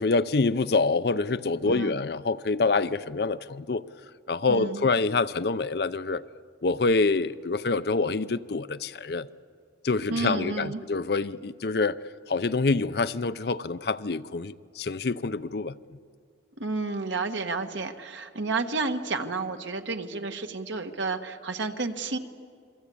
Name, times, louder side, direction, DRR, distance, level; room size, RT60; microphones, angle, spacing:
voice 1, 0.0-3.8 4.3-6.2 6.6-9.3 9.8-12.0 12.3-15.7, left 3 dB, 60° left, 0.6 m, -26 dB
voice 2, 1.6-2.0 4.5-4.8 10.1-10.8 16.6-22.2, right 3 dB, 85° right, 1.5 m, -31 dB
27.5 x 22.5 x 8.5 m
head